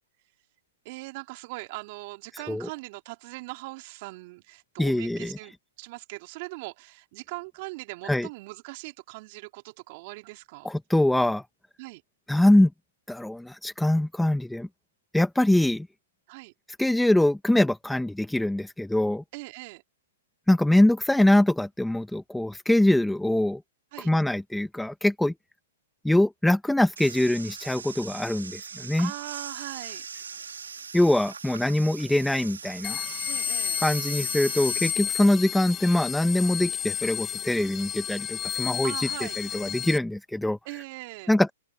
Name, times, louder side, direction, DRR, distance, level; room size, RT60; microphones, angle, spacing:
voice 1, 0.8-5.5 5.8-10.7 11.8-12.0 16.3-16.5 19.3-19.8 23.9-24.1 29.0-30.0 33.3-33.8 35.2-35.3 38.8-39.4 40.6-41.3, right 24 dB, 45° right, 3.0 m, -40 dB
voice 2, 4.8-5.4 8.0-8.3 10.6-11.4 12.3-12.7 13.1-14.7 15.1-15.9 16.8-19.2 20.5-23.6 24.0-25.3 26.0-29.1 30.9-33.0 33.8-40.6 41.3-41.5, left 1 dB, 5° left, 1.4 m, -23 dB
sound 1, 27.0-34.9, right 6 dB, 85° right, 3.0 m, -40 dB
sound 2, 32.8-40.0, left 9 dB, 20° left, 2.7 m, -32 dB
open air
hypercardioid pair, 125°, 0 cm